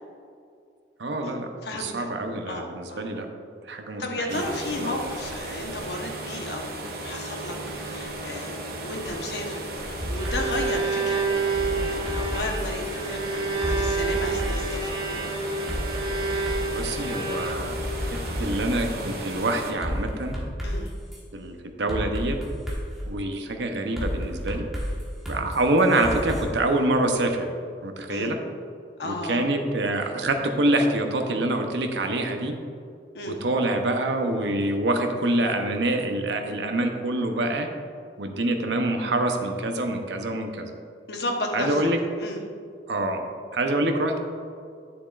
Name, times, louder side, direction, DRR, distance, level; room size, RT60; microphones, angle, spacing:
voice 1, 1.0-1.5 1.7-3.3 3.7-4.5 4.7-4.9 16.7-17.7 18.4-20.4 21.3-22.4 23.1-24.6 25.3-27.5 27.8-28.4 29.0-32.5 33.3-37.7 38.2-40.7 41.5-42.0 42.9-43.2 43.5-44.2, right 1 dB, 85° right, 4 dB, 0.8 m, -26 dB
voice 2, 1.6-2.1 2.5-3.1 4.0-7.6 7.8-15.3 20.6-20.9 28.1-28.3 29.0-29.4 33.1-33.4 41.1-41.9 42.2-42.4, left 1 dB, 70° left, 2 dB, 1.0 m, -33 dB
sound 1, 4.3-19.7, right 1 dB, 55° right, 1.0 m, -35 dB
Bowed string instrument, 9.9-17.9, right 3 dB, 25° right, 0.8 m, -29 dB
sound 2, 10.0-10.7 11.5-13.0 13.6-14.8 15.7-17.0 17.5-18.9 19.8-21.2 21.9-23.1 24.0-26.4, equal, ahead, 1.3 m, -31 dB
9.8 x 7.0 x 2.5 m, 2.3 s
head